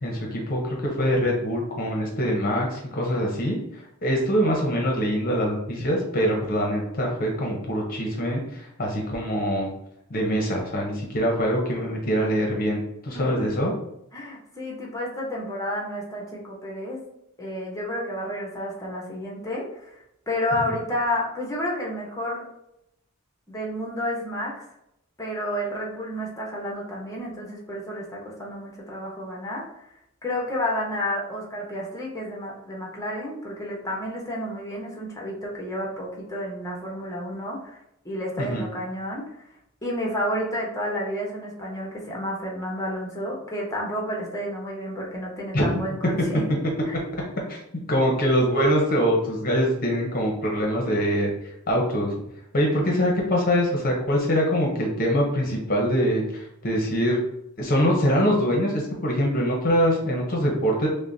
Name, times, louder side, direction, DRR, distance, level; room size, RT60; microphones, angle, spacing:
voice 1, 0.0-9.7 10.1-13.7 38.4-38.6 45.5-45.7 47.5-47.6 47.9-51.3 51.7-52.1 52.5-56.2 56.6-57.2 57.6-60.9, equal, 45° left, -1 dB, 0.8 m, -24 dB
voice 2, 13.1-13.6 14.1-17.0 17.4-22.4 23.5-24.6 25.2-29.6 30.2-37.8 38.0-39.2 39.8-46.4 46.9-47.0, left 1 dB, 15° left, -3 dB, 0.9 m, -31 dB
6.1 x 2.2 x 2.6 m, 0.81 s
head